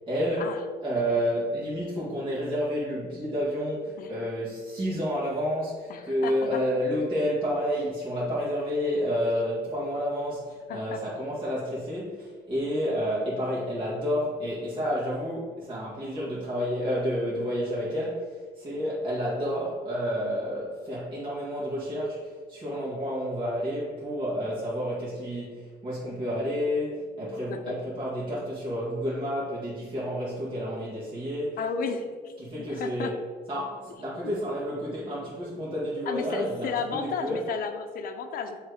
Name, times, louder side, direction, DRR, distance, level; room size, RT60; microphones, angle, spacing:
voice 1, 0.1-0.5 0.8-31.6 32.4-33.2 33.5-37.4, equal, 30° right, -8 dB, 1.9 m, -30 dB
voice 2, 5.9-6.6 10.7-11.0 27.5-27.8 31.6-32.4 32.7-33.1 35.2-35.3 36.1-38.6, left 5 dB, 60° left, 6 dB, 0.6 m, -33 dB
7.3 x 3.3 x 5.0 m, 1.5 s
cardioid pair, 110°, 17 cm